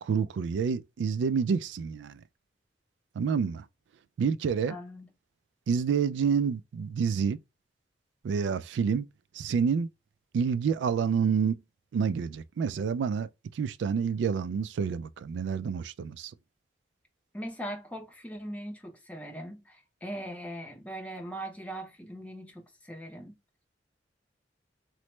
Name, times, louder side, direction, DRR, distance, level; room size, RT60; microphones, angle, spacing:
voice 1, 0.0-2.2 3.2-3.6 4.2-4.7 5.7-7.4 8.2-9.1 9.3-9.9 10.3-11.6 11.9-13.3 13.5-16.3, right 6 dB, 85° right, 0.3 m, -28 dB
voice 2, 4.7-5.1 17.3-23.4, equal, 10° left, 0.6 m, -40 dB
3.1 x 2.0 x 3.1 m
head